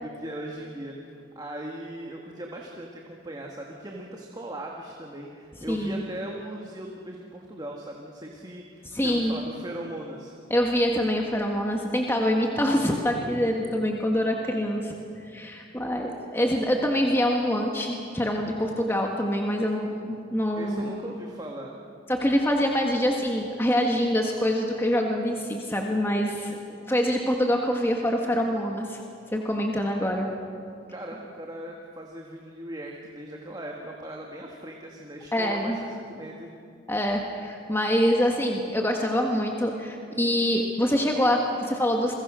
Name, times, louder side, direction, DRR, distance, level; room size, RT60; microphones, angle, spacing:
voice 1, 0.0-10.3 20.6-21.8 30.9-36.5, right 1 dB, 20° right, 0 dB, 1.8 m, -39 dB
voice 2, 5.7-6.0 8.9-9.4 10.5-14.9 15.3-20.9 22.1-29.0 29.3-30.3 35.3-35.8 36.9-42.1, equal, 10° left, 1 dB, 1.6 m, -25 dB
29.5 x 22.5 x 6.3 m, 2.4 s
head